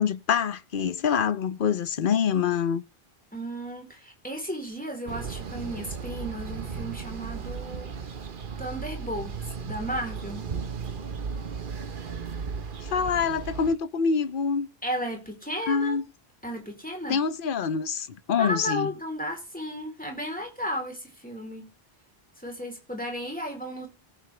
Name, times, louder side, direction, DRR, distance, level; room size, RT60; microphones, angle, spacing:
voice 1, 0.0-2.8 12.8-14.7 15.7-16.0 17.1-18.9, left 6 dB, 60° left, 0.9 m, -25 dB
voice 2, 3.3-7.9 8.6-9.4 9.6-10.5 14.8-16.0 16.4-17.2 18.4-21.7 22.4-23.9, equal, 10° left, 3.6 m, -34 dB
sound 1, 5.1-13.7, right 6 dB, 55° right, 1.2 m, -35 dB
17.5 x 7.9 x 3.3 m
omnidirectional pair, 1.0 m